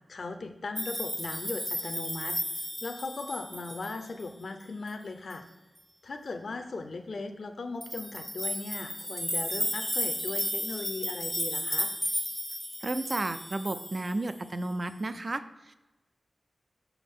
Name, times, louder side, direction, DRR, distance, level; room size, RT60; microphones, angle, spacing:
voice 1, 0.1-2.4 2.8-5.5 6.0-11.9, left 3 dB, 65° left, 7 dB, 0.5 m, -38 dB
sound 1, 0.8-4.2 4.9-5.0 5.3-5.4 7.8-14.4, equal, ahead, 0.7 m, -34 dB
voice 2, 12.8-15.8, right 2 dB, 45° right, 11 dB, 0.4 m, -33 dB
7.1 x 5.8 x 3.6 m, 1.1 s
wide cardioid pair, 70°, 0 cm